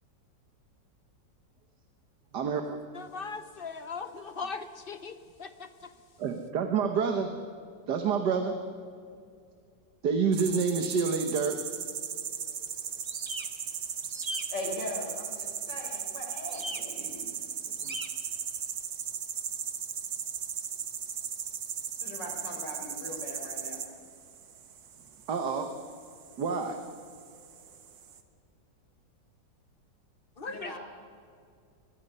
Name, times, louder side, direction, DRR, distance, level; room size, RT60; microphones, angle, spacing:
voice 1, 2.3-2.8 6.2-7.4 7.9-8.6 10.0-11.6 17.8-18.0 25.3-25.8 26.4-26.8, right 5 dB, 70° right, 6 dB, 1.7 m, -28 dB
voice 2, 2.9-5.9 30.4-30.8, left 4 dB, 40° left, 10 dB, 1.0 m, -39 dB
sound 1, 10.3-28.2, right 8 dB, 90° right, 2.0 m, -38 dB
sound 2, 13.0-13.5 14.0-14.4 16.5-16.8 17.8-18.1, right 1 dB, 20° right, 1.1 m, -38 dB
voice 3, 14.5-17.2 22.0-23.8 30.5-30.8, left 1 dB, 75° left, 1 dB, 4.6 m, -40 dB
23.5 x 20.5 x 5.5 m, 2.3 s
omnidirectional pair, 1.9 m